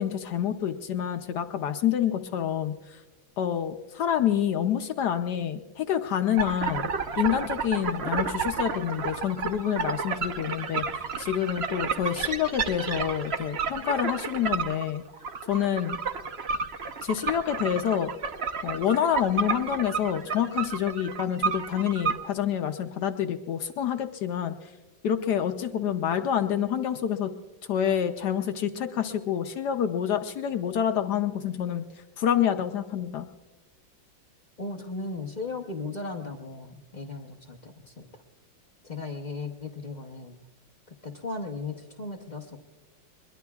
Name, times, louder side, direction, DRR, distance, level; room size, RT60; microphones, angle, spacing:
voice 1, 0.0-2.7 3.4-6.9 7.2-10.8 11.2-15.0 15.5-16.0 17.0-18.1 18.6-24.5 25.0-27.3 27.7-31.8 32.2-33.3, left 9 dB, 70° left, 7 dB, 1.1 m, -27 dB
sound 1, 6.4-22.2, right 5 dB, 55° right, 0.7 m, -31 dB
voice 2, 34.6-38.1 38.8-40.4 41.0-42.6, left 3 dB, 45° left, 1 dB, 0.5 m, -36 dB
22.5 x 21.5 x 2.3 m, 1.2 s
omnidirectional pair, 2.1 m